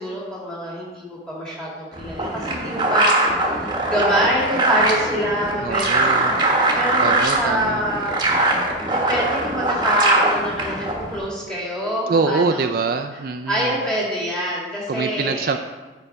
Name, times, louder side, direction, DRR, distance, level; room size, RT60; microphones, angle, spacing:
voice 1, 0.0-6.3 6.7-8.1 8.9-12.8 13.5-15.5, equal, 5° left, -6 dB, 2.2 m, -26 dB
sound 1, 1.9-11.2, right 2 dB, 25° right, 1.1 m, -21 dB
voice 2, 5.6-6.4 7.0-7.8 12.1-13.8 14.9-15.6, right 4 dB, 50° right, 7 dB, 0.3 m, -24 dB
8.9 x 5.5 x 4.6 m, 1.3 s
head